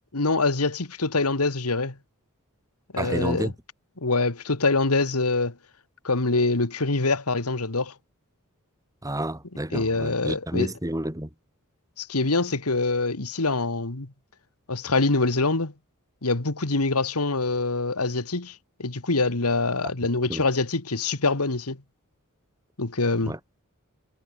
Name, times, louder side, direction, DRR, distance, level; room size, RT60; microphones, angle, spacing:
voice 1, 0.1-2.0 2.9-3.5 4.0-5.5 6.0-7.9 9.7-10.7 12.0-14.1 14.7-15.7 16.2-21.8 22.8-23.3, left 3 dB, 85° left, 1.9 m, -25 dB
voice 2, 3.0-3.5 9.0-11.3 20.3-20.5 23.3-23.4, right 1 dB, 15° right, 2.9 m, -30 dB
head